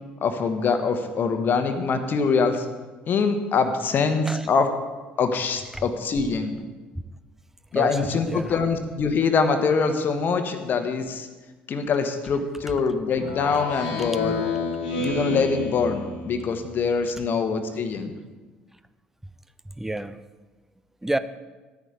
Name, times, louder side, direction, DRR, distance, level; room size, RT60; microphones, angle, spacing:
voice 1, 0.2-2.7 3.1-4.7 5.2-6.6 7.7-11.3 11.7-14.4 15.0-18.1, left 5 dB, 40° left, 7 dB, 1.2 m, -24 dB
voice 2, 7.7-8.6 19.7-20.2 21.0-21.2, right 1 dB, 5° right, 13 dB, 0.5 m, -30 dB
Speech synthesizer, 13.2-16.7, left 3 dB, 75° left, 1.6 m, -29 dB
13.0 x 9.4 x 3.8 m, 1.3 s
figure-of-eight pair, 55°, 5 cm